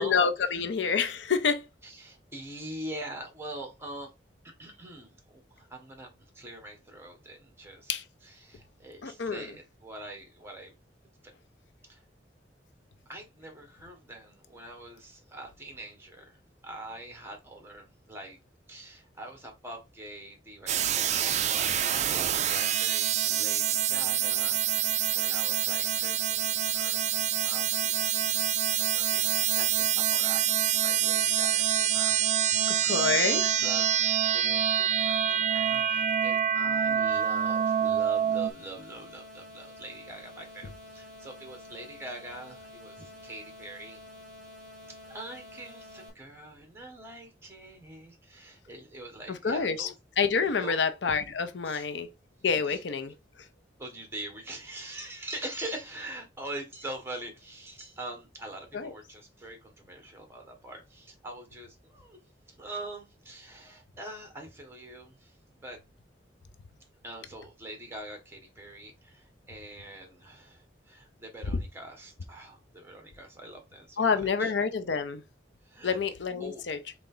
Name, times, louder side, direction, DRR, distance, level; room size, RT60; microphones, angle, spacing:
voice 1, 0.0-1.7 7.9-8.0 9.0-9.5 32.7-33.4 49.3-49.9 50.2-52.1 52.4-53.1 58.7-58.9 74.0-75.2 75.8-76.8, left 5 dB, 75° left, 0.5 m, -28 dB
voice 2, 1.8-4.1 4.6-8.0 8.2-10.8 11.2-11.3 11.8-12.0 13.0-18.4 18.7-27.0 27.4-28.4 28.7-32.2 32.5-44.0 44.9-49.9 50.6-50.8 51.6-51.9 52.7-52.8 53.8-62.2 62.5-65.8 67.0-74.5 75.6-76.0 76.4-76.7, right 1 dB, 15° right, 1.4 m, -44 dB
sound 1, 20.7-38.5, right 9 dB, 40° right, 0.4 m, -26 dB
sound 2, 37.1-46.1, left 2 dB, 5° left, 2.0 m, -49 dB
3.8 x 3.5 x 3.8 m
head